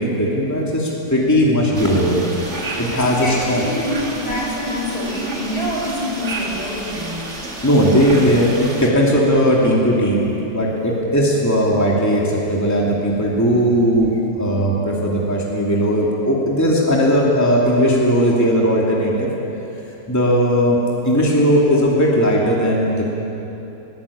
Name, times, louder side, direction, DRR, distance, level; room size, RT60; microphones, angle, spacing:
voice 1, 0.0-2.2 2.8-3.6 7.6-19.3 20.1-20.8 21.0-23.1, equal, 10° left, -3 dB, 2.8 m, -17 dB
sound 1, 1.7-8.9, right 2 dB, 40° right, 2.6 m, -31 dB
voice 2, 3.0-7.6 14.1-14.2, left 1 dB, 60° left, -3 dB, 5.9 m, -26 dB
21.0 x 18.0 x 8.7 m, 3.0 s
omnidirectional pair, 1.9 m